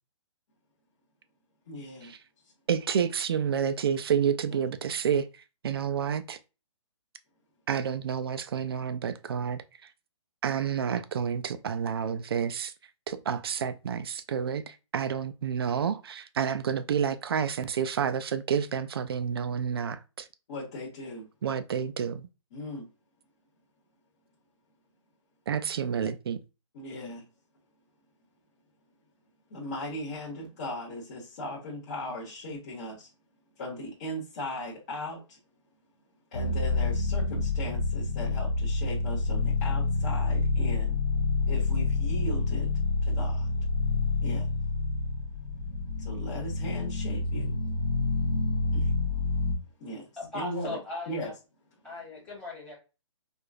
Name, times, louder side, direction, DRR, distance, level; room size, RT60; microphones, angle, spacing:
voice 1, 1.7-2.1 4.1-4.6 20.5-21.3 22.5-22.9 26.7-27.3 29.5-33.1 33.6-35.4 36.3-41.0 41.5-42.7 43.0-43.5 44.2-44.5 46.0-47.6 48.7-48.9 49.8-50.8 51.1-51.3, left 1 dB, 30° left, 1.2 m, -38 dB
voice 2, 2.7-5.3 5.6-6.4 7.7-9.6 10.4-12.7 13.1-20.2 21.4-22.3 25.5-26.4, right 7 dB, 50° right, 0.4 m, -29 dB
sound 1, 36.3-49.5, left 3 dB, 55° left, 0.9 m, -28 dB
voice 3, 50.2-51.3 51.8-52.7, left 2 dB, 5° left, 1.5 m, -38 dB
4.8 x 2.4 x 2.4 m
hypercardioid pair, 165°, 16 cm